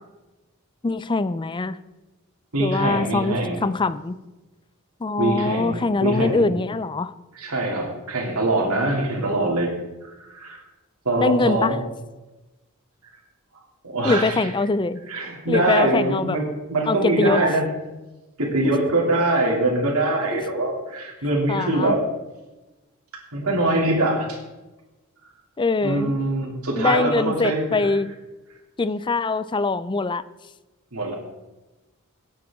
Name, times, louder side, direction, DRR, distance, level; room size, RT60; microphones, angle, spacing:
voice 1, 0.8-1.8 2.6-4.2 5.0-7.1 11.2-11.8 14.0-15.0 15.5-16.4 16.9-17.4 20.3-20.4 21.5-21.9 25.6-26.1 26.8-28.1 28.8-30.2, left 3 dB, 20° left, 15 dB, 0.4 m, -23 dB
voice 2, 2.5-3.6 5.2-6.5 7.3-9.7 10.0-10.6 11.0-11.8 13.8-14.5 15.1-17.6 18.4-22.0 23.3-24.4 25.8-28.0 30.9-31.1, right 2 dB, 85° right, -2 dB, 2.8 m, -23 dB
17.5 x 8.8 x 3.6 m, 1.1 s
head